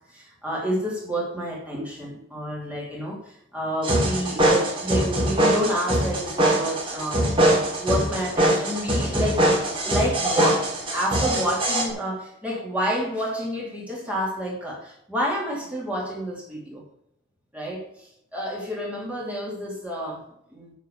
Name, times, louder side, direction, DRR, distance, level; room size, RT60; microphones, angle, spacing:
voice 1, 0.1-7.3 7.8-9.5 9.8-16.8 17.5-20.2 20.5-20.7, equal, 5° right, -4 dB, 2.9 m, -29 dB
sound 1, 3.8-11.8, right 1 dB, 30° right, 3.7 m, -22 dB
9.1 x 6.0 x 7.1 m, 0.77 s
head